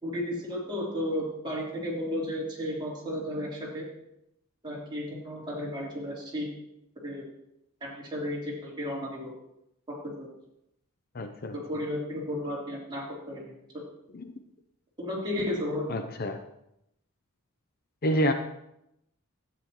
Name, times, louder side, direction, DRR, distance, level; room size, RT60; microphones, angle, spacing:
voice 1, 0.0-3.9 4.6-6.6 7.0-7.3 7.8-9.3 10.0-10.3 11.5-13.8 15.0-16.0, left 1 dB, 20° right, -6 dB, 3.5 m, -33 dB
voice 2, 11.1-11.5 14.1-14.2 15.9-16.4 18.0-18.3, equal, 45° left, 7 dB, 0.6 m, -27 dB
13.0 x 9.3 x 3.1 m, 0.81 s
head